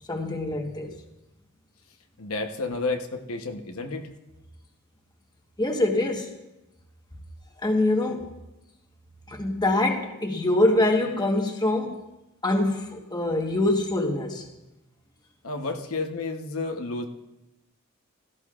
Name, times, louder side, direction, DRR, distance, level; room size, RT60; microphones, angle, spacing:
voice 1, 0.1-0.9 5.6-6.3 7.6-8.3 9.3-12.0 12.4-14.5, left 2 dB, 20° left, 2 dB, 1.2 m, -24 dB
voice 2, 2.2-4.1 15.4-17.1, left 3 dB, 70° left, 4 dB, 1.0 m, -31 dB
17.0 x 14.0 x 2.4 m, 0.97 s
head